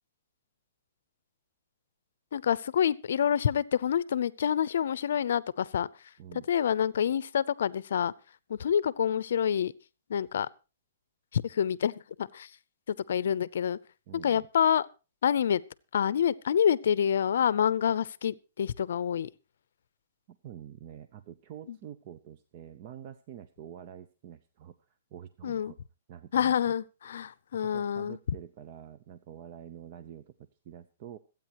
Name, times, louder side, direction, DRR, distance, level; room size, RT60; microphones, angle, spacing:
voice 1, 2.3-5.9 6.5-8.1 8.5-9.7 10.1-10.5 11.3-12.5 12.9-13.8 14.2-14.9 15.2-15.6 15.9-19.3 25.4-25.7 26.3-28.2, left 8 dB, 65° left, 19 dB, 0.6 m, -27 dB
voice 2, 14.1-14.5 20.3-25.8 26.1-26.8 27.0-27.2 27.6-31.2, right 10 dB, 35° right, 11 dB, 0.6 m, -47 dB
26.0 x 9.0 x 3.0 m, 0.30 s
hypercardioid pair, 170°, 0 cm